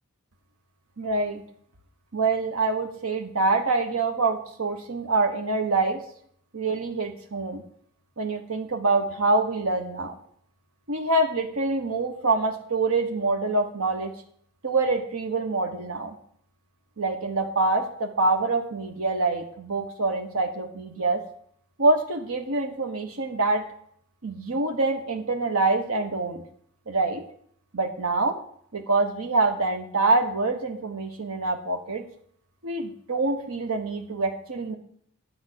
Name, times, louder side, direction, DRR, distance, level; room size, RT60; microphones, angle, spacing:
voice 1, 1.0-1.4 2.1-6.0 6.5-7.6 8.2-10.1 10.9-14.1 14.6-16.1 17.0-21.2 21.8-23.6 24.2-26.4 26.9-27.2 27.7-28.4 28.7-32.0 32.6-34.8, right 3 dB, 85° right, 4 dB, 1.4 m, -25 dB
10.0 x 5.2 x 8.3 m, 0.62 s
head